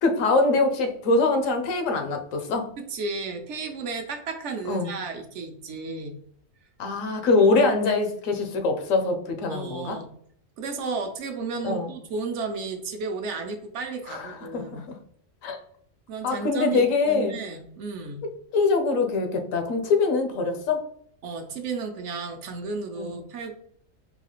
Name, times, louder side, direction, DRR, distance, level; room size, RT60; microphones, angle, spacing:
voice 1, 0.0-2.7 4.7-4.9 6.8-10.0 11.6-11.9 14.1-15.0 15.4-15.6 16.2-17.4 18.2-20.9 23.0-23.1, left 3 dB, 90° left, 5 dB, 1.0 m, -24 dB
voice 2, 2.9-6.2 9.5-10.1 10.6-14.8 16.1-18.2 21.2-23.5, right 4 dB, 70° right, 5 dB, 0.9 m, -33 dB
3.9 x 2.3 x 2.9 m, 0.63 s
omnidirectional pair, 1.3 m